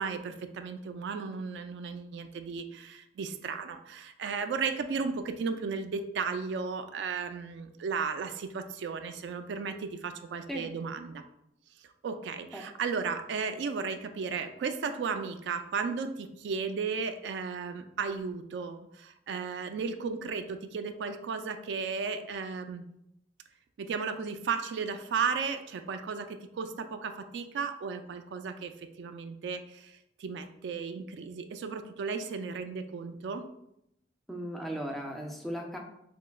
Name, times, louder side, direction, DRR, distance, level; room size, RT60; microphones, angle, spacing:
voice 1, 0.0-11.2 12.0-22.9 23.8-33.4, right 5 dB, 75° right, 8 dB, 0.3 m, -35 dB
voice 2, 34.3-35.8, equal, ahead, 1 dB, 0.4 m, -36 dB
4.4 x 2.8 x 2.3 m, 0.79 s
head